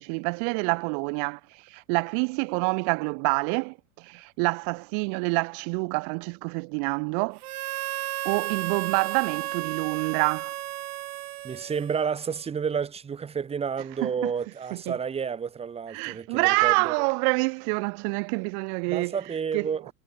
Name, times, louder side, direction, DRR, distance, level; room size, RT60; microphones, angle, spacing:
voice 1, 0.0-7.4 8.2-10.5 14.0-14.3 14.9-15.0 15.9-19.7, right 40 dB or more, 30° right, 0.5 m, -27 dB
Harmonica, 7.4-12.3, right 15 dB, 85° right, 2.9 m, -33 dB
voice 2, 11.4-17.1 18.9-19.9, right 6 dB, 15° right, 2.0 m, -30 dB
supercardioid pair, 160°, 44 cm